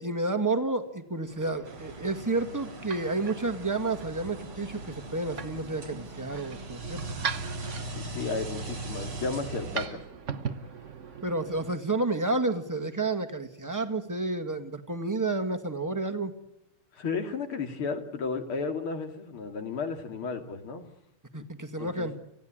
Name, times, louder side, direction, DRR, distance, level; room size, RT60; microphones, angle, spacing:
voice 1, 0.0-7.0 11.2-16.3 21.3-22.1, right 2 dB, 10° right, 7 dB, 1.6 m, -30 dB
sound 1, 1.2-11.7, right 6 dB, 40° right, 1.2 m, -41 dB
sound 2, 1.6-9.9, right 2 dB, 85° right, 4.4 m, -40 dB
voice 2, 7.9-10.0 16.9-20.9 21.8-22.2, left 4 dB, 70° left, 6 dB, 3.2 m, -33 dB
28.5 x 16.0 x 8.8 m, 0.87 s
omnidirectional pair, 2.4 m